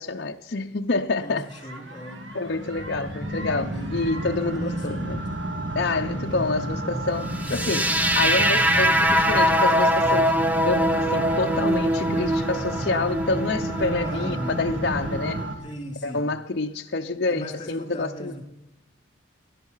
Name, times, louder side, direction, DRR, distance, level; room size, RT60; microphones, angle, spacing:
voice 1, 0.0-1.5 2.3-5.2 5.7-10.3 10.7-15.4 16.0-18.3, left 3 dB, 55° left, 0.7 m, -27 dB
voice 2, 1.2-2.2 3.7-5.5 6.1-6.5 14.0-14.6 15.6-16.3 17.3-18.4, equal, 25° left, 4.1 m, -39 dB
sound 1, 1.5-15.5, right 1 dB, 75° right, 2.2 m, -31 dB
sound 2, 7.4-15.4, equal, 10° right, 0.7 m, -23 dB
16.5 x 11.5 x 5.6 m
head